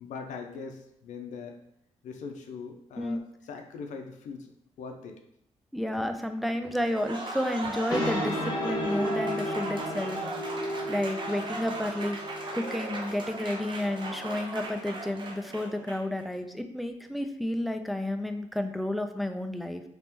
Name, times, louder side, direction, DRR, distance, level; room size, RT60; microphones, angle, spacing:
voice 1, 0.0-1.6 2.0-4.5 4.8-5.2, left 5 dB, 90° left, 4 dB, 0.4 m, -41 dB
voice 2, 5.7-10.2 10.9-12.2 12.5-19.8, left 1 dB, ahead, 6 dB, 0.3 m, -31 dB
Applause, 6.8-16.2, right 2 dB, 40° right, 0.6 m, -38 dB
sound 1, 7.6-14.8, equal, 35° left, 0.9 m, -34 dB
3.4 x 2.9 x 3.0 m, 0.76 s
cardioid pair, 100°, 12 cm